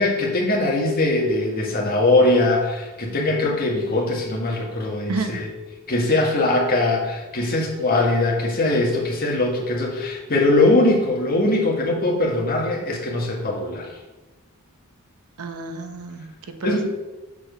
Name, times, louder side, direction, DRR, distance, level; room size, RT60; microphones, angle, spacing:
voice 1, 0.0-5.5 5.9-13.9 16.6-16.8, left 2 dB, 45° left, -1 dB, 1.9 m, -21 dB
voice 2, 5.1-5.4 15.4-16.8, right 3 dB, 90° right, 6 dB, 0.9 m, -30 dB
7.1 x 4.7 x 6.9 m, 1.1 s
head